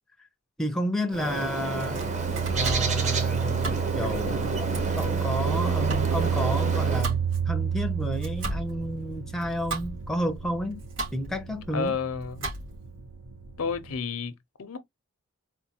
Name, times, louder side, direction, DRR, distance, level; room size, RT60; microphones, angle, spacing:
voice 1, 0.6-2.0 2.5-4.5 5.0-10.8 11.1-11.9, equal, ahead, 0.5 m, -31 dB
Bird, 1.1-7.1, right 3 dB, 35° right, 0.8 m, -30 dB
sound 1, 1.2-13.9, right 7 dB, 85° right, 0.9 m, -30 dB
Domestic sounds home sounds, 1.6-13.0, right 2 dB, 60° right, 2.3 m, -38 dB
voice 2, 11.7-12.5 13.6-14.8, left 5 dB, 75° left, 0.7 m, -31 dB
4.4 x 2.2 x 2.8 m
head